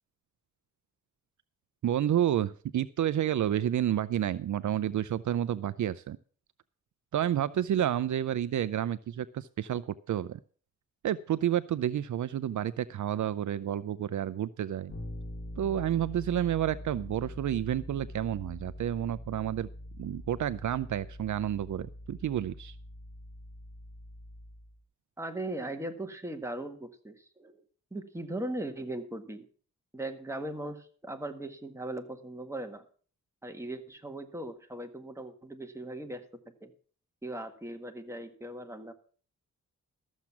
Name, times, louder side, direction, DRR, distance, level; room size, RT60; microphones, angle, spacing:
voice 1, 1.8-6.2 7.1-10.4 11.0-15.0 15.6-19.7 20.0-22.7, right 11 dB, 70° right, 0.5 m, -30 dB
Bass guitar, 14.9-24.8, left 1 dB, 35° left, 6.5 m, -44 dB
voice 2, 25.2-27.6 27.9-29.5 29.9-32.9 33.4-36.3 36.6-36.7 37.2-38.9, right 1 dB, 10° right, 1.7 m, -39 dB
13.5 x 7.3 x 5.9 m
cardioid pair, 90°, 31 cm